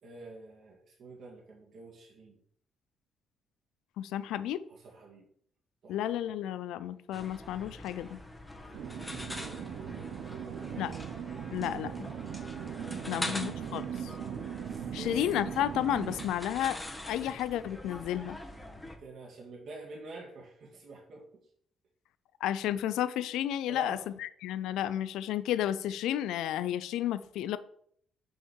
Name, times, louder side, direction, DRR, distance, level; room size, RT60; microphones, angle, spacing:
voice 1, 0.0-2.4 4.7-5.3 5.8-6.0 8.5-11.1 11.4-11.7 13.0-13.3 14.6-15.2 19.0-21.2 23.7-24.1, right 3 dB, 65° right, -2 dB, 1.8 m, -48 dB
voice 2, 4.0-4.6 5.9-8.2 10.8-10.9 11.5-12.1 13.1-14.1 14.9-18.4 22.4-27.6, left 11 dB, 90° left, 15 dB, 0.4 m, -32 dB
sound 1, 7.1-19.0, left 1 dB, 10° left, 1.3 m, -44 dB
sound 2, 8.7-16.3, right 9 dB, 80° right, 0.6 m, -39 dB
5.7 x 5.5 x 4.7 m, 0.64 s
cardioid pair, 90°, 0 cm